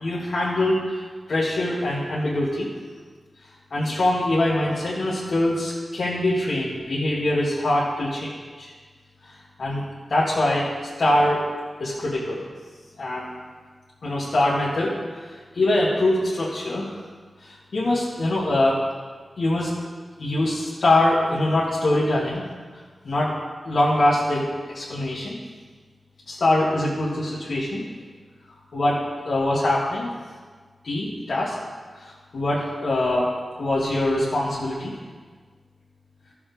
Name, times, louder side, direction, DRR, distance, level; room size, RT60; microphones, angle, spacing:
voice 1, 0.0-2.7 3.7-8.3 8.6-8.7 9.2-9.3 9.6-9.8 10.1-10.7 11.0-11.5 11.8-12.5 13.0-13.3 14.0-16.9 17.4-18.8 19.4-19.7 20.2-22.5 23.0-23.4 23.7-25.4 26.3-27.8 28.7-30.1 30.8-31.6 32.0-34.9, left 1 dB, 75° left, -8 dB, 2.0 m, -23 dB
14.5 x 7.0 x 3.6 m, 1.5 s
cardioid pair, 50°, 0 cm